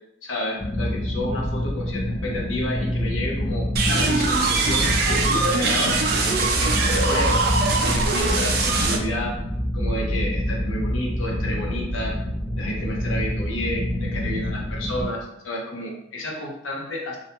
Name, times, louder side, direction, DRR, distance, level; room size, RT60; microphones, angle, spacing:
voice 1, 0.2-7.4 7.8-9.4 9.7-12.2 12.5-17.2, left 1 dB, 80° left, -1 dB, 0.6 m, -31 dB
sound 1, 0.6-15.1, equal, 10° left, 0.7 m, -26 dB
sound 2, 3.8-9.0, right 3 dB, 50° right, 0.3 m, -22 dB
2.4 x 2.1 x 2.9 m, 0.82 s
head